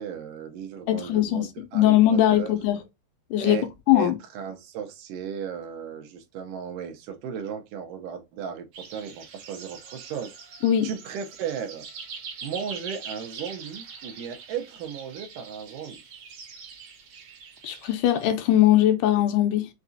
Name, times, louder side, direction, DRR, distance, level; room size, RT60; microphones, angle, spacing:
voice 1, 0.0-2.6 3.4-3.7 3.9-11.9 12.4-16.0, right 7 dB, 80° right, 2.4 m, -36 dB
voice 2, 0.9-1.5 1.7-2.8 3.3-3.6 3.9-4.2 10.6-10.9 17.6-19.7, left 12 dB, 80° left, 2.3 m, -20 dB
sound 1, 8.7-18.3, right 5 dB, 60° right, 1.8 m, -43 dB
5.9 x 2.5 x 2.7 m
omnidirectional pair, 3.8 m